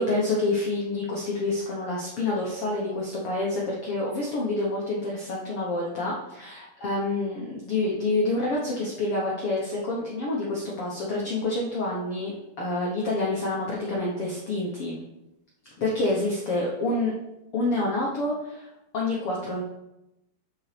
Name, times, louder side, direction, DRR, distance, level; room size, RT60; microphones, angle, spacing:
voice 1, 0.0-12.3 12.6-15.0 15.8-17.1 17.5-18.7 18.9-19.6, left 2 dB, 90° left, -4 dB, 1.2 m, -27 dB
13.0 x 5.4 x 3.4 m, 0.93 s
omnidirectional pair, 4.6 m